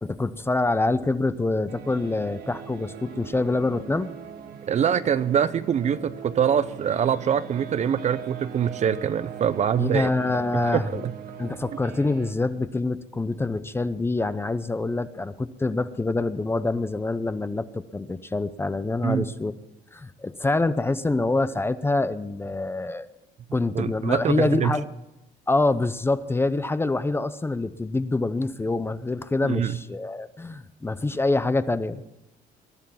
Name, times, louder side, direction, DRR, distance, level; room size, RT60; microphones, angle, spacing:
voice 1, 0.0-4.1 9.8-11.0 11.4-19.5 19.9-23.1 23.5-24.9 25.5-32.0, left 2 dB, 15° left, 13 dB, 0.6 m, -26 dB
sound 1, 1.7-12.3, right 8 dB, 65° right, 1.4 m, -40 dB
voice 2, 4.7-10.1 10.5-11.1 19.0-19.2 23.7-24.8 29.4-29.8, right 8 dB, 45° right, 15 dB, 0.6 m, -24 dB
20.5 x 11.5 x 5.7 m, 0.96 s
cardioid pair, 110°, 17 cm